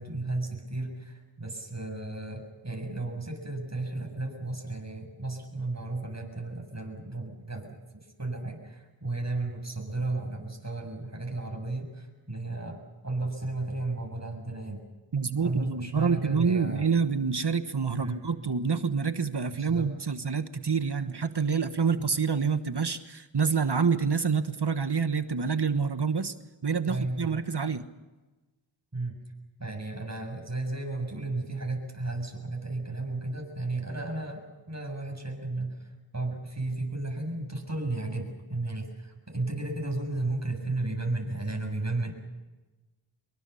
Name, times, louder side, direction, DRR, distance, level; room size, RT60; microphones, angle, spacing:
voice 1, 0.0-7.8 8.2-14.8 15.4-16.9 17.9-18.2 19.5-19.9 22.0-22.1 26.9-27.4 28.9-29.2 29.6-42.1, right 2 dB, 35° right, 2 dB, 7.3 m, -34 dB
voice 2, 15.1-26.3 26.6-27.8, right 5 dB, 60° right, 10 dB, 1.3 m, -27 dB
25.0 x 23.5 x 7.0 m, 1.2 s
wide cardioid pair, 40°, 46 cm